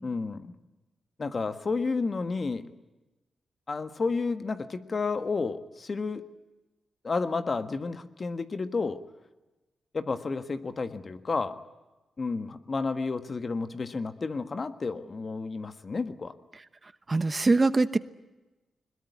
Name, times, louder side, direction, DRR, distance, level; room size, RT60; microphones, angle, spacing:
voice 1, 0.0-0.5 1.2-2.6 3.7-6.2 7.0-9.0 9.9-11.5 12.2-16.3, left 4 dB, 40° left, 10 dB, 1.5 m, -31 dB
voice 2, 17.1-18.0, right 3 dB, 30° right, 14 dB, 0.9 m, -23 dB
21.5 x 21.5 x 9.6 m, 1.1 s
cardioid pair, 80°, 0 cm